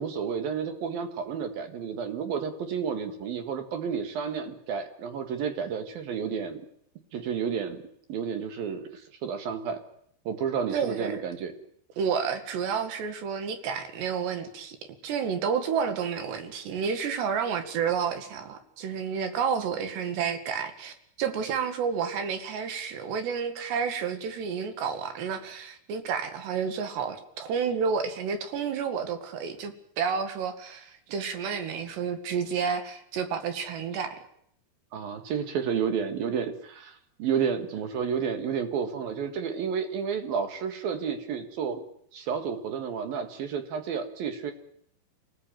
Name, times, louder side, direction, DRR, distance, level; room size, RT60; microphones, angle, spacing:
voice 1, 0.0-6.6 7.1-7.8 8.1-9.8 10.2-11.5 34.9-41.8 42.1-44.5, right 7 dB, 65° right, 7 dB, 3.5 m, -31 dB
voice 2, 10.7-11.2 12.0-14.8 15.0-34.2, right 6 dB, 90° right, 8 dB, 4.2 m, -30 dB
26.5 x 19.0 x 9.1 m, 0.70 s
omnidirectional pair, 4.7 m